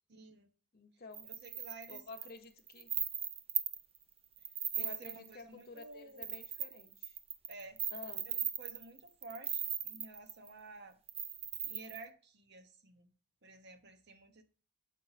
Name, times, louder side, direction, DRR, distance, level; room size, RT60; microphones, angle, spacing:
voice 1, 0.1-0.5 1.2-2.0 4.7-6.4 7.5-7.8 8.2-11.0 11.6-13.1 13.4-14.4, right 3 dB, 50° right, 0.9 m, -52 dB
voice 2, 0.7-1.3 1.9-2.9 4.7-7.1 7.9-8.3, left 3 dB, 45° left, 0.7 m, -51 dB
Payal Anklet Jewelery, 1.1-4.0 4.4-5.3 5.8-5.9 6.2-10.5 11.1-12.1, right 8 dB, 25° right, 0.6 m, -38 dB
7.4 x 5.2 x 4.0 m
head